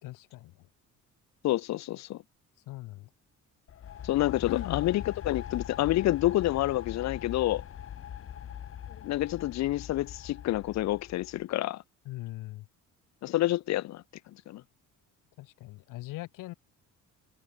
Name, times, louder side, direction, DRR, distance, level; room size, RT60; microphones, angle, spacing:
voice 1, 0.0-0.5 2.7-3.1 4.5-4.8 12.1-12.7 15.4-16.5, left 18 dB, 90° left, 5.5 m, -40 dB
voice 2, 1.4-2.2 4.0-7.6 9.0-11.8 13.2-14.0 14.5-14.6, left 15 dB, 60° left, 0.9 m, -28 dB
sound 1, 3.7-11.4, left 9 dB, 45° left, 5.1 m, -41 dB
cardioid pair, 150°, 31 cm